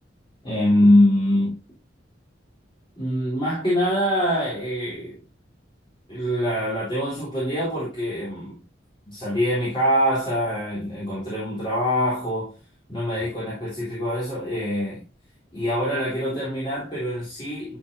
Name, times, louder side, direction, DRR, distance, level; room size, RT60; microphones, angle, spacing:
voice 1, 0.4-1.6 3.0-5.2 6.1-8.6 9.0-12.5 12.9-15.0 15.5-17.8, equal, 25° left, 3.8 m, -24 dB
12.0 x 5.5 x 2.8 m
head